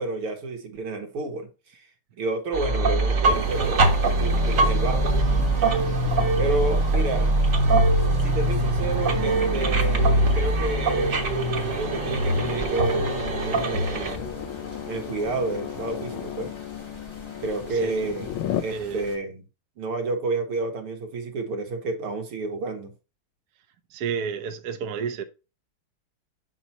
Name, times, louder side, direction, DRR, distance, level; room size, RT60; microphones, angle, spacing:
voice 1, 0.0-1.9 2.2-3.9 4.2-5.8 6.4-7.3 8.2-10.1 10.3-11.2 11.6-14.4 14.9-16.5 17.4-18.3 18.6-19.4 19.8-22.9, right 2 dB, 85° right, 2.4 m, -30 dB
sound 1, 2.5-14.2, right 2 dB, 45° right, 1.4 m, -22 dB
sound 2, 3.2-19.2, left 2 dB, 25° left, 0.6 m, -38 dB
sound 3, 9.1-18.6, left 10 dB, 75° left, 1.5 m, -35 dB
voice 2, 18.7-19.1 23.9-25.2, right 6 dB, 60° right, 1.0 m, -30 dB
8.1 x 2.9 x 5.5 m
omnidirectional pair, 2.4 m